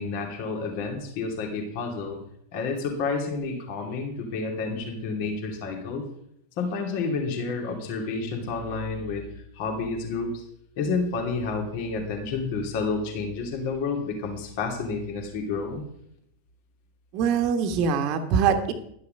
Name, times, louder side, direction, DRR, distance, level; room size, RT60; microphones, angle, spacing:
voice 1, 0.0-2.2 2.5-6.1 6.6-10.4 10.8-15.8, left 4 dB, 45° left, 2 dB, 2.6 m, -30 dB
voice 2, 17.1-18.7, right 6 dB, 40° right, 7 dB, 1.3 m, -23 dB
12.0 x 9.6 x 5.3 m, 0.72 s
figure-of-eight pair, 90°, 0 cm